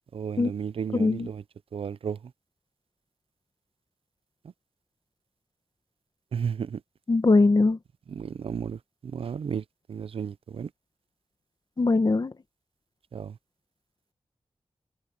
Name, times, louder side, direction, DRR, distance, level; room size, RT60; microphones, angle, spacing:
voice 1, 0.1-1.4 1.7-2.2 6.3-6.8 8.1-8.8 9.1-9.6 9.9-10.7 13.1-13.3, right 7 dB, 80° right, 0.5 m, -33 dB
voice 2, 0.9-1.3 7.1-7.8 11.8-12.3, left 3 dB, 45° left, 1.6 m, -21 dB
wide cardioid pair, 65°, 9 cm